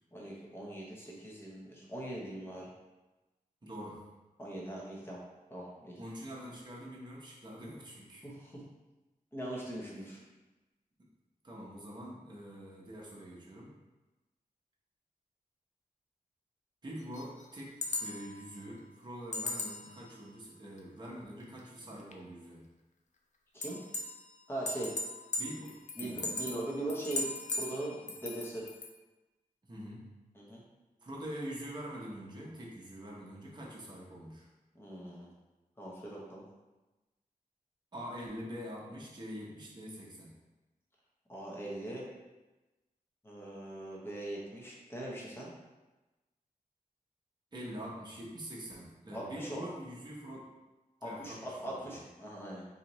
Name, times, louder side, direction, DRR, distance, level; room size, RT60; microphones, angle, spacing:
voice 1, 0.1-2.7 4.4-5.2 5.5-6.0 8.2-8.7 9.3-10.2 23.5-23.8 24.5-24.9 26.0-28.7 30.3-30.6 34.7-35.3 35.8-36.4 41.3-42.1 43.2-45.5 49.1-49.7 51.0-52.6, right 1 dB, 15° left, -4 dB, 0.8 m, -41 dB
voice 2, 3.6-4.0 6.0-8.2 11.4-13.7 16.8-22.6 25.4-26.3 29.6-30.0 31.0-34.5 37.9-40.3 47.5-50.5 51.0-52.0, equal, 30° right, -4 dB, 0.8 m, -45 dB
sound 1, 17.1-18.6 19.3-20.1 20.8-20.9 21.6-21.7 22.1-22.2 23.6-24.4 24.7-28.9, left 2 dB, 55° left, 0.4 m, -38 dB
4.0 x 2.7 x 3.0 m, 1.1 s
wide cardioid pair, 130°, 15 cm